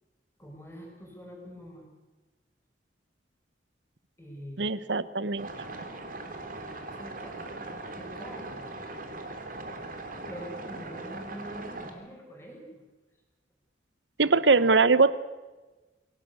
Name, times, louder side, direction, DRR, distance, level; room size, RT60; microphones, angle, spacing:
voice 1, 0.4-1.9 4.2-4.7 6.9-8.7 10.3-12.8 14.2-14.7, equal, 15° left, 0 dB, 6.0 m, -45 dB
voice 2, 4.6-5.5 14.2-15.1, right 4 dB, 75° right, 16 dB, 1.0 m, -22 dB
sound 1, 5.4-11.9, right 2 dB, 45° right, 3.1 m, -40 dB
25.5 x 17.5 x 8.3 m, 1.2 s
head